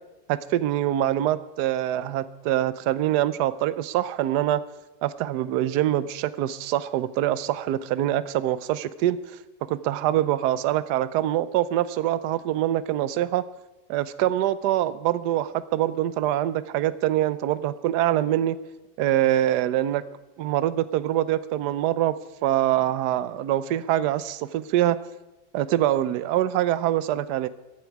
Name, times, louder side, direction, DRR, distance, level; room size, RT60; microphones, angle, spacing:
voice 1, 0.3-4.6 5.0-9.4 9.7-13.4 13.9-18.6 19.0-20.0 20.4-22.1 22.4-25.0 25.5-27.5, right 13 dB, 70° right, 16 dB, 1.1 m, -24 dB
15.0 x 11.5 x 4.6 m, 1.1 s
omnidirectional pair, 2.0 m